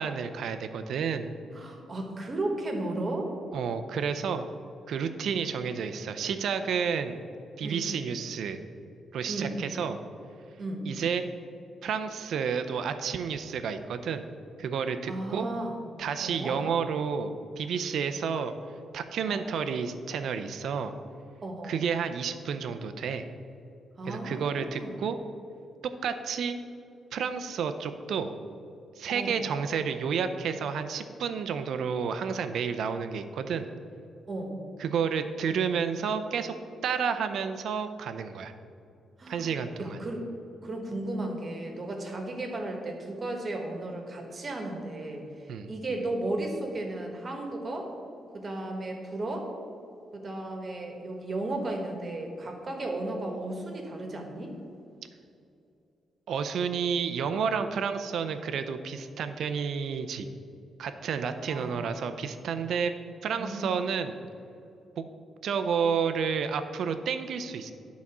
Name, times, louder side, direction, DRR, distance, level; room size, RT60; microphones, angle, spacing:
voice 1, 0.0-1.3 3.5-4.5 4.9-7.2 7.6-8.6 9.1-10.0 10.9-11.3 11.8-14.3 14.6-15.5 16.0-18.5 18.9-20.9 21.6-23.3 24.1-25.2 26.0-26.6 27.1-28.3 29.0-33.7 34.8-36.5 36.8-38.5 39.3-40.0 45.5-45.7 56.3-60.3 60.8-62.9 63.2-64.2 65.0-65.1 65.4-67.7, right 6 dB, 75° right, 9 dB, 0.5 m, -30 dB
voice 2, 1.5-3.3 7.6-7.9 9.3-9.6 10.6-10.9 15.1-15.8 16.2-16.6 19.3-19.5 21.4-21.8 24.0-25.0 29.1-29.3 34.3-34.6 39.2-39.5 39.8-40.3 40.6-47.9 48.3-49.5 50.1-54.5 61.5-62.0 63.3-63.7, right 2 dB, 35° right, 2 dB, 1.5 m, -34 dB
11.0 x 4.1 x 6.0 m, 2.6 s
cardioid pair, 105°, 0 cm